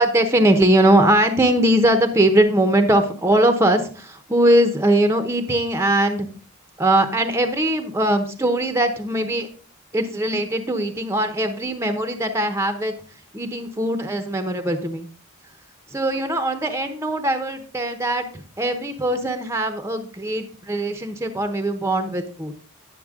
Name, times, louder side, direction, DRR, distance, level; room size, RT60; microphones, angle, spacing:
voice 1, 0.0-6.3 6.8-9.5 9.9-12.9 13.3-15.1 15.9-22.5, right 1 dB, 10° right, 7 dB, 0.8 m, -20 dB
10.5 x 6.9 x 3.7 m, 0.40 s
head